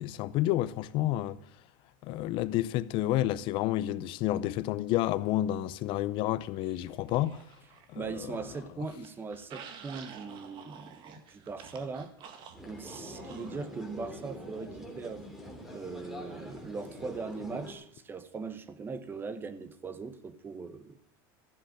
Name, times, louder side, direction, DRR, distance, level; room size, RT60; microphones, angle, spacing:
voice 1, 0.0-1.4 2.0-7.4 7.9-8.4, left 14 dB, 50° left, 0.6 m, -30 dB
sound 1, 6.6-8.0 8.3-13.6, right 7 dB, 45° right, 1.7 m, -50 dB
voice 2, 7.9-12.1 12.7-15.3 15.7-21.0, right 4 dB, 20° right, 1.0 m, -40 dB
sound 2, 12.5-17.7, equal, 5° right, 3.1 m, -44 dB
14.0 x 7.7 x 8.7 m
supercardioid pair, 140°, 11 cm